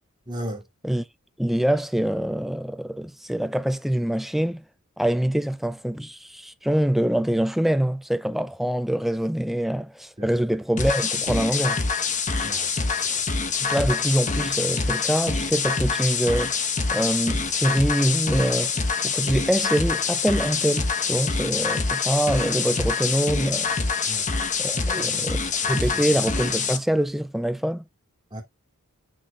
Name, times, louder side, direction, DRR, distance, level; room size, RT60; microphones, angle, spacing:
voice 1, 0.3-0.6 10.2-10.4 12.4-13.3 24.1-24.3 24.7-26.2 28.3-28.4, right 1 dB, 20° right, 2.7 m, -37 dB
voice 2, 1.4-4.6 5.0-11.8 13.6-16.6 16.9-18.7 19.0-23.7 24.6-25.4 25.7-27.8, right 1 dB, ahead, 0.4 m, -24 dB
sound 1, 10.8-26.8, left 5 dB, 35° left, 1.1 m, -25 dB
7.9 x 6.3 x 2.4 m
head